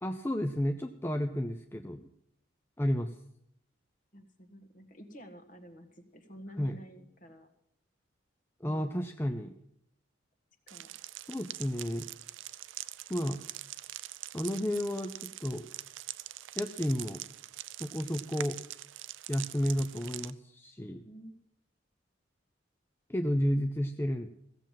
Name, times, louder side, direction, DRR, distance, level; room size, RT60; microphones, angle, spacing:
voice 1, 0.0-2.1 2.8-3.1 6.6-6.8 8.6-9.6 11.3-12.1 13.1-13.4 14.3-15.7 16.6-17.2 17.8-18.6 19.3-21.0 23.1-24.3, equal, 10° left, 6 dB, 0.5 m, -32 dB
voice 2, 4.1-7.5 10.7-10.9 21.0-21.4, equal, 45° left, 7 dB, 1.5 m, -50 dB
sound 1, 10.7-20.3, right 14 dB, 85° right, 0.5 m, -44 dB
16.0 x 7.5 x 7.4 m, 0.73 s
head